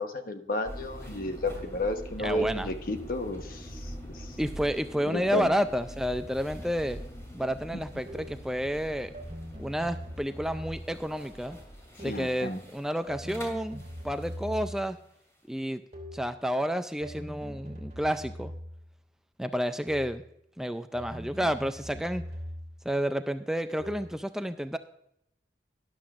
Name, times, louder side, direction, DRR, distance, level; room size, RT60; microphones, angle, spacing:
voice 1, 0.0-4.4 5.0-5.5 12.0-12.6, left 1 dB, 50° left, 7 dB, 1.1 m, -32 dB
sound 1, 0.6-14.6, equal, 15° left, 2.7 m, -44 dB
voice 2, 2.2-2.7 4.4-7.0 7.3-9.1 9.6-11.6 12.0-15.0 15.5-15.8 16.1-18.5 19.4-20.2 20.6-22.3 22.9-24.8, equal, 5° right, 10 dB, 0.3 m, -30 dB
sound 2, 8.1-8.5 9.1-11.1 12.0-12.4 13.1-15.0 15.9-16.3 17.0-18.9 19.9-20.3 20.9-22.9 23.8-24.2, equal, 35° right, 2.6 m, -42 dB
13.0 x 11.5 x 2.5 m, 0.77 s
head